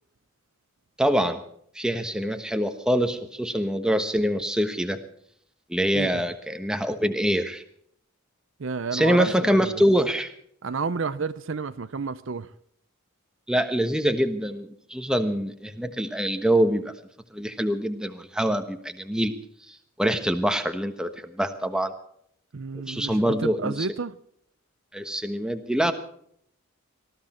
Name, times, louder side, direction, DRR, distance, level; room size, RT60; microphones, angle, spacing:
voice 1, 1.0-1.4 1.7-5.0 5.7-7.6 8.9-10.3 13.5-16.9 17.3-19.3 20.0-21.9 22.9-23.9 24.9-25.9, equal, 5° right, 7 dB, 1.1 m, -24 dB
voice 2, 8.6-9.8 10.6-12.5 22.5-24.2, right 5 dB, 55° right, 14 dB, 0.6 m, -31 dB
19.5 x 14.0 x 4.3 m, 0.66 s
head